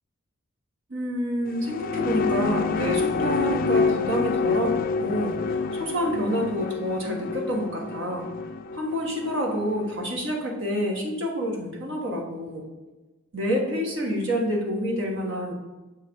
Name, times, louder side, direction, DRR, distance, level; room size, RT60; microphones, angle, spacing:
voice 1, 0.9-8.3 8.7-12.6 13.3-15.5, equal, 65° right, 0 dB, 1.4 m, -28 dB
sound 1, 1.5-10.1, left 4 dB, 45° left, 0.3 m, -27 dB
6.4 x 3.2 x 5.3 m, 1.1 s
head